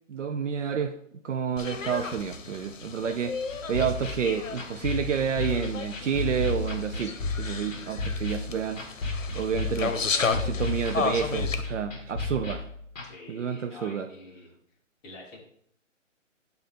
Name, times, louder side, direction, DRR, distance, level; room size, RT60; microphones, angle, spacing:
voice 1, 0.1-1.0 1.2-3.4 3.7-8.9 9.3-10.0 10.3-12.6 13.3-14.1, right 7 dB, 70° right, 9 dB, 0.6 m, -29 dB
sound 1, 1.6-11.6, left 5 dB, 80° left, 0.8 m, -34 dB
sound 2, 3.5-13.1, left 3 dB, 30° left, 1.5 m, -33 dB
voice 2, 13.0-14.5 15.0-15.4, left 2 dB, 10° left, -3 dB, 0.8 m, -46 dB
6.7 x 2.7 x 5.3 m, 0.69 s
hypercardioid pair, 150°, 38 cm